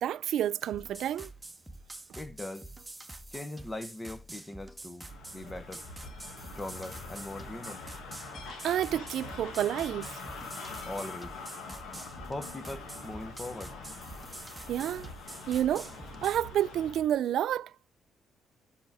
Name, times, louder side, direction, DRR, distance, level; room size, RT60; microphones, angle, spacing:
voice 1, 0.0-1.3 8.6-10.2 14.7-15.1 15.5-16.0 16.2-17.9, right 11 dB, 75° right, 0.3 m, -29 dB
sound 1, 0.6-16.5, right 2 dB, 10° right, 1.0 m, -47 dB
voice 2, 2.2-2.7 3.3-5.8 6.5-7.9 10.9-11.4 12.3-13.8, left 2 dB, 20° left, 1.0 m, -40 dB
sound 2, 5.0-17.1, left 4 dB, 80° left, 1.9 m, -44 dB
5.8 x 5.2 x 4.7 m
cardioid pair, 90°, 0 cm